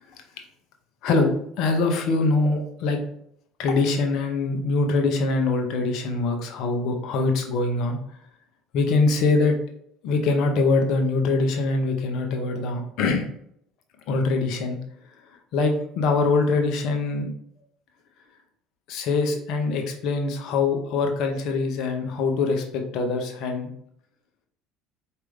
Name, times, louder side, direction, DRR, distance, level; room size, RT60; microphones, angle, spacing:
voice 1, 1.6-3.0 3.6-8.0 8.7-9.6 10.0-13.3 14.1-14.8 15.5-17.3 18.9-23.7, left 3 dB, 60° left, 3 dB, 0.8 m, -23 dB
4.7 x 2.8 x 3.5 m, 0.70 s
hypercardioid pair, 65°, 0 cm